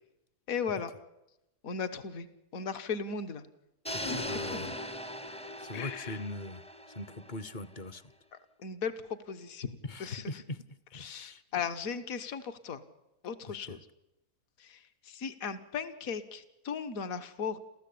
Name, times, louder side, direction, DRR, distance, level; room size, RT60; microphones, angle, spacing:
voice 1, 0.5-0.9 1.6-2.3 2.5-3.4 4.0-4.2 4.5-4.7 5.7-6.1 8.6-8.9 9.3-10.2 10.9-12.8 13.2-13.8 14.7-14.8 15.1-17.6, left 6 dB, 65° left, 10 dB, 1.6 m, -36 dB
sound 1, 3.8-7.9, left 1 dB, 10° left, 0.4 m, -40 dB
voice 2, 3.9-4.8 5.6-6.6 6.9-8.0 9.8-10.7 10.9-11.4 13.5-13.8, left 2 dB, 40° left, 17 dB, 0.8 m, -41 dB
30.0 x 14.0 x 8.6 m, 0.91 s
omnidirectional pair, 1.6 m